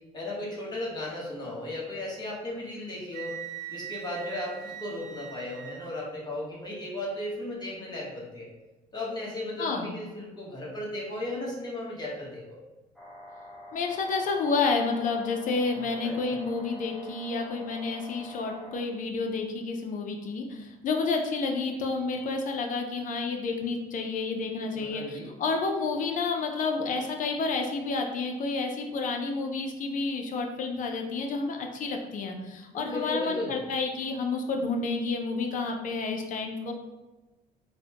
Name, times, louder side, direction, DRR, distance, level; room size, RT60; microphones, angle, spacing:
voice 1, 0.1-3.4 3.7-8.5 8.9-12.6 15.7-16.4 24.7-25.3 32.7-33.5, left 1 dB, 25° left, -5 dB, 1.1 m, -36 dB
Wind instrument woodwind instrument, 3.1-5.9, right 10 dB, 45° right, 0.4 m, -41 dB
sound 1, 13.0-18.8, left 1 dB, ahead, 0.8 m, -46 dB
voice 2, 13.7-36.7, left 4 dB, 50° left, 3 dB, 0.6 m, -30 dB
4.0 x 2.2 x 2.9 m, 1.1 s
cardioid pair, 110°, 17 cm